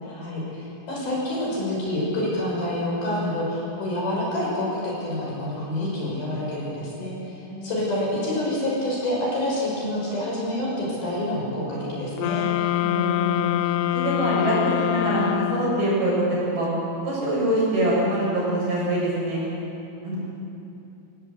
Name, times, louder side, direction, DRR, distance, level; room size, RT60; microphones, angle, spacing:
voice 1, 0.0-12.5, left 1 dB, 50° left, -4 dB, 7.6 m, -27 dB
voice 2, 7.5-7.8 12.8-13.5 13.9-16.7 17.0-19.5 20.0-20.2, right 1 dB, 50° right, -6 dB, 9.2 m, -24 dB
sound 1, 12.2-16.1, left 16 dB, 80° left, 2.9 m, -25 dB
27.5 x 17.5 x 8.2 m, 2.8 s
omnidirectional pair, 5.8 m